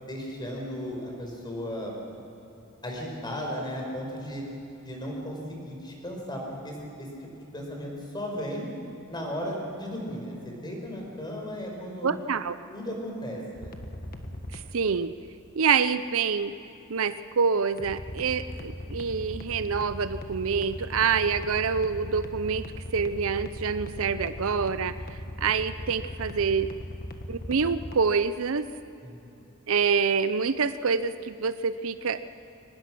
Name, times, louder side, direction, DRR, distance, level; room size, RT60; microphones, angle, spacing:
voice 1, 0.0-1.9 2.8-4.4 4.8-7.1 7.4-8.7 9.1-12.1 12.7-13.7 29.0-29.4, equal, 20° left, 0 dB, 4.8 m, -35 dB
voice 2, 12.0-12.6 14.5-15.1 15.6-16.5 16.9-22.7 22.9-24.9 25.4-26.7 27.3-28.7 29.7-32.2, right 5 dB, 65° right, 13 dB, 0.6 m, -26 dB
sound 1, 13.6-14.6 17.8-28.0, left 1 dB, 45° left, 1.5 m, -38 dB
23.0 x 19.5 x 6.2 m, 2.9 s
head